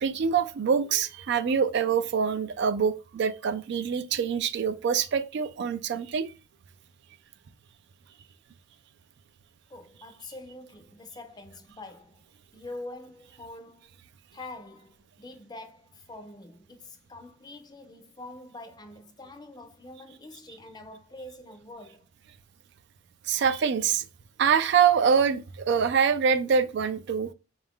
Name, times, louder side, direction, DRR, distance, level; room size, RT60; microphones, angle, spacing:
voice 1, 0.0-6.3 23.3-24.0 24.4-27.3, right 6 dB, 60° right, 0.3 m, -25 dB
voice 2, 9.7-12.2 12.5-14.0 14.3-22.0, left 2 dB, 20° left, 0.5 m, -45 dB
4.0 x 2.4 x 3.5 m
head